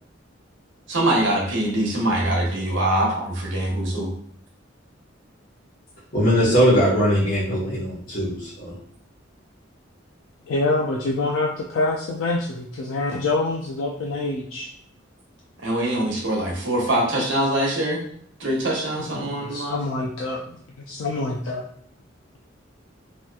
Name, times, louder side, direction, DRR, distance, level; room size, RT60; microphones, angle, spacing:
voice 1, 0.9-4.1 15.6-18.0 18.4-19.8, right 1 dB, 70° right, -1 dB, 0.9 m, -23 dB
voice 2, 6.1-8.7, equal, 50° left, -12 dB, 1.2 m, -20 dB
voice 3, 10.5-14.7 19.3-20.4 20.9-21.6, left 2 dB, 90° left, -1 dB, 0.4 m, -25 dB
3.1 x 2.9 x 2.3 m, 0.62 s
head